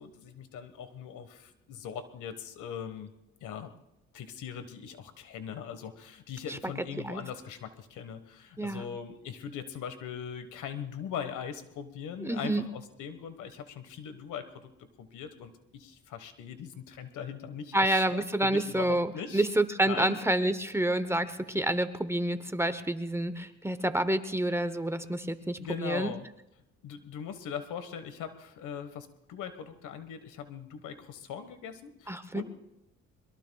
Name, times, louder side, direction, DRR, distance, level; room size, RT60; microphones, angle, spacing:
voice 1, 0.0-3.1 3.4-3.7 4.1-14.7 15.0-19.5 19.9-20.2 25.6-26.3 26.8-32.4, left 8 dB, 80° left, 10 dB, 1.5 m, -40 dB
voice 2, 12.2-12.6 17.7-26.1 32.1-32.4, right 1 dB, 10° right, 11 dB, 0.8 m, -28 dB
23.5 x 22.0 x 2.3 m, 0.87 s
cardioid pair, 90°, 30 cm